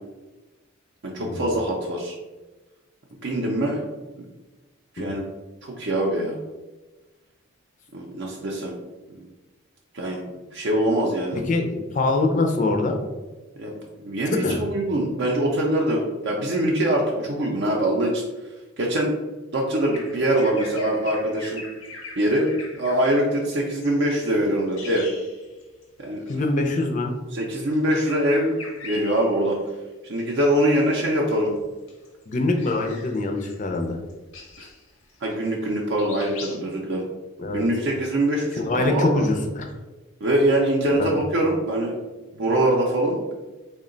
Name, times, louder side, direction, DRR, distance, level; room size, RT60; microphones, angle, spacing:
voice 1, 1.0-2.1 3.2-3.8 4.2-4.3 4.9-5.3 5.6-6.4 7.9-8.7 9.2-9.3 9.9-11.4 13.6-19.2 19.5-21.6 22.2-25.1 26.0-26.2 27.3-28.5 28.8-29.6 30.0-31.5 34.6-34.7 35.2-37.0 37.5-39.3 40.2-41.9 42.3-43.2, right 1 dB, 55° right, -2 dB, 0.5 m, -23 dB
voice 2, 11.3-13.0 14.4-14.6 26.3-27.1 32.3-34.0 37.4-37.6 38.6-39.7 41.0-41.1, left 2 dB, 35° left, 3 dB, 0.4 m, -24 dB
Bird vocalization bird call bird song, 19.8-25.8 26.2-26.4 27.4-29.7 30.2-30.8 31.2-35.7 35.9-36.6, left 4 dB, 80° left, 0.8 m, -42 dB
3.7 x 2.1 x 3.7 m, 1.2 s
head